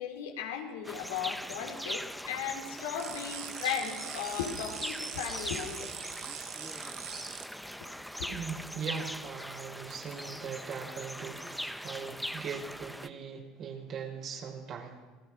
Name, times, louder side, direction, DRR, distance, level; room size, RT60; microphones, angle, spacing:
voice 1, 0.0-5.9 8.2-8.3, left 8 dB, 90° left, 2 dB, 4.2 m, -36 dB
sound 1, 0.8-13.1, equal, ahead, 1.1 m, -41 dB
sound 2, 3.0-7.4, right 11 dB, 80° right, 1.7 m, -42 dB
voice 2, 8.3-15.0, right 6 dB, 55° right, 2 dB, 5.9 m, -40 dB
28.5 x 20.5 x 6.5 m, 1.3 s
hypercardioid pair, 80°, 0 cm